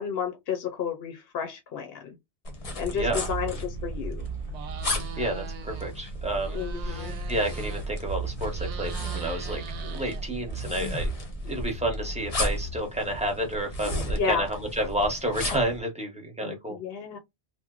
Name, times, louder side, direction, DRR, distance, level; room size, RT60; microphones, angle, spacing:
voice 1, 0.0-2.1 2.8-4.3 6.5-7.2 14.2-14.5 16.4-17.2, left 6 dB, 65° left, 0.8 m, -32 dB
sound 1, 2.4-15.8, left 1 dB, 35° left, 0.7 m, -35 dB
voice 2, 2.9-3.2 5.2-11.1 11.4-16.8, right 1 dB, 5° right, 0.8 m, -30 dB
sound 2, 3.0-12.8, right 3 dB, 60° right, 0.8 m, -36 dB
sound 3, 4.5-5.9 6.2-8.1 8.4-10.6, right 6 dB, 85° right, 0.9 m, -42 dB
2.9 x 2.1 x 3.6 m
omnidirectional pair, 1.1 m